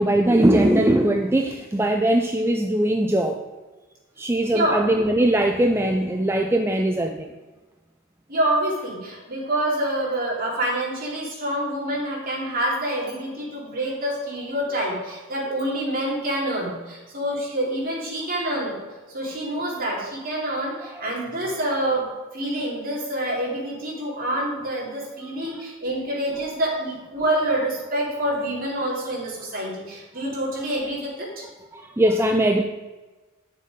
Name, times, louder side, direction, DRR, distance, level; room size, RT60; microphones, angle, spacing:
voice 1, 0.0-3.4 4.2-7.3 31.7-32.6, right 1 dB, 10° right, 4 dB, 0.4 m, -20 dB
voice 2, 4.4-4.8 8.3-18.8 19.1-22.0 22.3-31.4, right 1 dB, 45° right, -4 dB, 3.3 m, -27 dB
10.0 x 6.8 x 5.1 m, 1.2 s
head